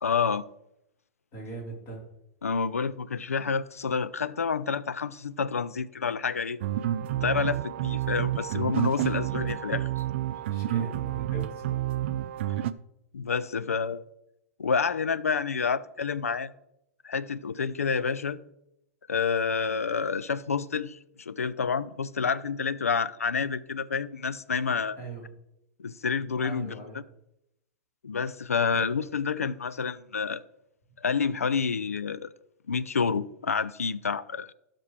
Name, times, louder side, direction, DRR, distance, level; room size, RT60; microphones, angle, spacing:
voice 1, 0.0-0.4 2.4-6.6 7.2-9.9 13.1-14.0 14.6-16.5 17.0-18.4 19.1-25.0 25.8-27.0 28.0-30.4 31.0-32.3 32.7-34.5, left 5 dB, 80° left, 0.4 m, -29 dB
voice 2, 1.3-2.1 10.3-11.8 25.0-25.2 26.4-27.0 28.7-28.9, right 3 dB, 35° left, 4.0 m, -40 dB
sound 1, 6.6-12.7, right 12 dB, 55° right, 0.5 m, -29 dB
17.0 x 6.0 x 3.3 m
figure-of-eight pair, 105°, 8 cm